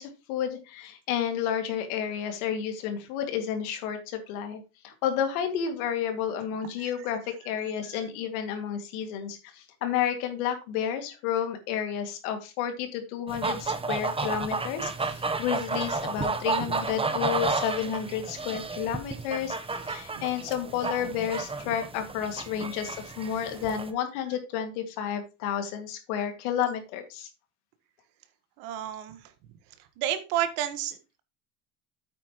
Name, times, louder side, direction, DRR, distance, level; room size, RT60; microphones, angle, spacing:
voice 1, 0.0-27.3, left 9 dB, 75° left, 6 dB, 2.3 m, -31 dB
sound 1, 13.3-23.9, right 4 dB, 15° right, 0.9 m, -32 dB
voice 2, 28.6-29.2 30.0-31.2, right 11 dB, 70° right, 10 dB, 1.6 m, -30 dB
9.0 x 8.4 x 3.1 m, 0.28 s
supercardioid pair, 100°, 44 cm